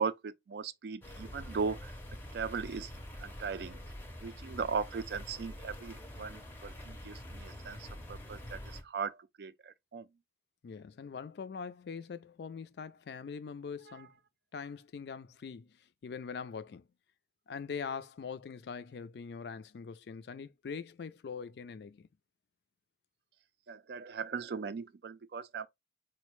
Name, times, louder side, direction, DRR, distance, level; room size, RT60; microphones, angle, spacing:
voice 1, 0.0-1.9 2.3-2.9 3.2-3.8 4.2-10.1 13.9-14.0 23.7-25.7, right 5 dB, 65° right, 0.4 m, -38 dB
sound 1, 1.0-8.8, left 1 dB, 10° left, 0.5 m, -46 dB
voice 2, 10.6-14.1 14.5-15.8 16.0-16.9 17.5-22.1, left 6 dB, 70° left, 0.3 m, -42 dB
4.3 x 2.1 x 3.0 m
head